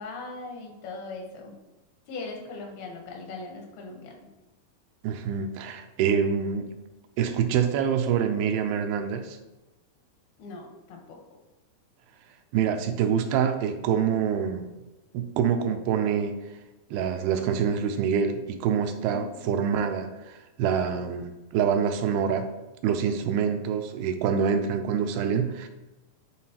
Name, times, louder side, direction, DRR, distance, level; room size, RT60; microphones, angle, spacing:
voice 1, 0.0-1.5 2.1-4.2 10.4-11.2 19.1-19.3, left 3 dB, 80° left, 1 dB, 3.0 m, -39 dB
voice 2, 5.0-6.7 7.2-9.4 12.5-14.7 15.1-16.4 16.9-22.5 22.8-25.7, right 7 dB, 90° right, 7 dB, 2.6 m, -26 dB
10.0 x 3.8 x 2.9 m, 1.1 s
omnidirectional pair, 4.3 m